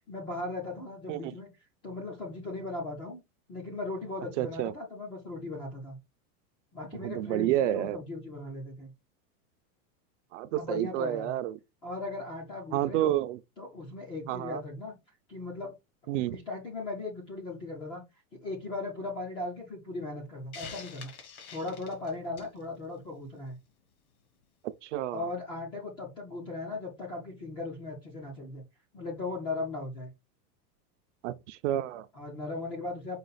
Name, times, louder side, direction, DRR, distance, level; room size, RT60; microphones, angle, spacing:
voice 1, 0.1-1.5 1.8-3.2 3.5-6.0 6.7-8.9 10.5-11.3 11.8-13.1 13.6-14.9 15.3-15.7 16.3-18.0 18.3-21.1 21.5-23.6 25.1-28.6 28.9-30.1 32.1-33.2, left 2 dB, 10° left, 0.3 m, -38 dB
voice 2, 4.4-4.7 7.0-8.0 10.3-11.6 12.7-13.4 14.3-14.6 16.1-16.4 24.6-25.3 31.2-32.1, right 13 dB, 50° right, 0.5 m, -30 dB
Hiss, 20.5-22.6, left 6 dB, 65° left, 1.7 m, -45 dB
5.4 x 2.4 x 3.9 m
supercardioid pair, 155°, 47 cm